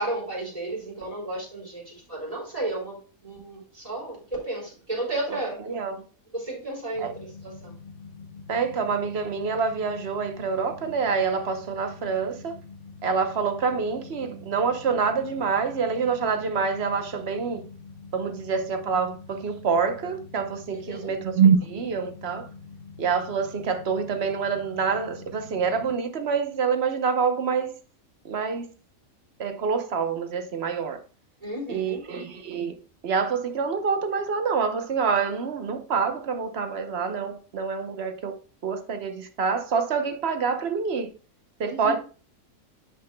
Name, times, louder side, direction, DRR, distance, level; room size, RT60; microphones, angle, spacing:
voice 1, 0.0-5.6 6.3-7.7 20.9-21.1 31.4-32.0 41.6-42.0, right 2 dB, 25° right, 4.0 m, -33 dB
voice 2, 5.7-6.0 7.0-7.1 8.5-12.5 13.0-17.6 18.1-22.5 23.0-27.7 28.2-28.7 29.4-31.0 31.7-32.8 33.0-38.3 38.6-41.1 41.6-42.0, right 5 dB, 50° right, 1.0 m, -26 dB
sound 1, 6.9-26.0, left 4 dB, 45° left, 1.1 m, -45 dB
9.9 x 5.9 x 2.2 m
omnidirectional pair, 1.5 m